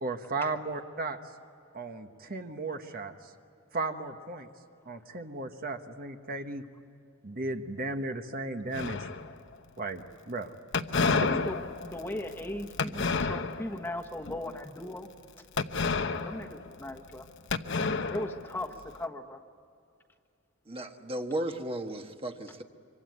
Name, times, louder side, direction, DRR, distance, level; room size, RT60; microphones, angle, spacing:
voice 1, 0.0-1.2 1.7-3.3 3.7-4.5 4.9-6.6 7.2-9.1 9.8-10.5 11.0-11.3, right 3 dB, 45° right, 6 dB, 1.2 m, -35 dB
sound 1, 8.7-9.5 10.7-13.8 14.2-14.6 15.6-17.2 17.5-18.8, left 4 dB, 60° left, 0.9 m, -30 dB
voice 2, 11.1-15.1 16.1-17.3 18.1-19.4, left 1 dB, 10° left, 3 dB, 1.3 m, -38 dB
voice 3, 20.7-22.6, right 1 dB, 30° right, 5 dB, 1.4 m, -35 dB
25.5 x 24.5 x 9.5 m, 2.5 s
head